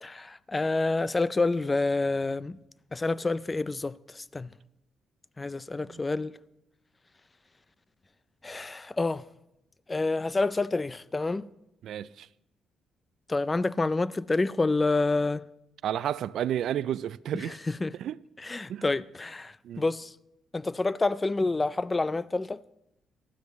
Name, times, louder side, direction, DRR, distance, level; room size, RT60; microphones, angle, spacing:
voice 1, 0.0-2.6 2.9-4.5 5.4-6.3 8.4-9.2 9.9-11.5 13.3-15.4 17.3-17.9 18.4-20.1 20.5-22.6, left 3 dB, 20° left, 0.4 m, -28 dB
voice 2, 11.8-12.3 15.8-17.6 18.0-18.2 18.7-18.8 19.6-19.8, right 10 dB, 70° right, 0.4 m, -31 dB
19.0 x 12.5 x 3.1 m
cardioid pair, 90°, 0 cm